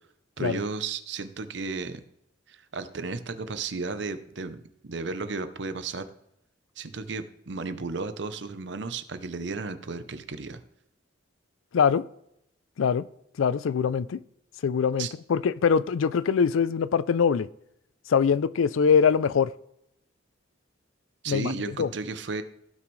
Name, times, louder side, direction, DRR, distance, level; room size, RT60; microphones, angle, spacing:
voice 1, 0.4-2.0 2.5-6.1 6.8-10.6 15.0-15.1 21.2-22.4, right 4 dB, 65° right, 0.7 m, -34 dB
voice 2, 11.7-12.0 12.8-13.1 13.4-14.2 14.6-17.5 18.1-19.5 21.3-21.5 21.8-21.9, left 6 dB, 90° left, 0.4 m, -23 dB
16.0 x 6.0 x 3.2 m
head